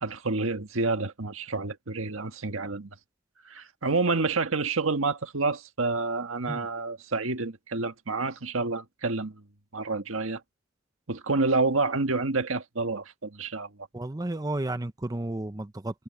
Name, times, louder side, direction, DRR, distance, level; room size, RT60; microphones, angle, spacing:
voice 1, 0.0-2.9 3.4-9.4 9.7-10.4 11.1-13.7, right 3 dB, 85° right, 1.6 m, -28 dB
voice 2, 13.9-16.0, right 1 dB, 20° right, 0.7 m, -32 dB
head